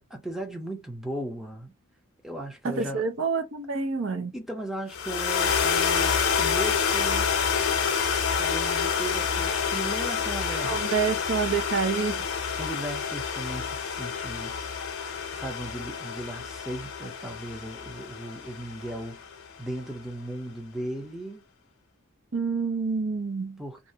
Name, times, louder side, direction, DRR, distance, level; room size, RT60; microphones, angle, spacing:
voice 1, 0.0-1.7 2.2-3.1 4.3-7.3 8.4-10.9 12.6-14.6 15.3-19.2 19.6-21.4 23.6-23.8, right 1 dB, ahead, 0.6 m, -36 dB
voice 2, 2.6-4.3 10.6-12.3 22.3-23.6, right 5 dB, 60° right, 0.6 m, -28 dB
sound 1, 4.9-19.3, left 6 dB, 70° left, 0.6 m, -28 dB
2.5 x 2.1 x 2.6 m
head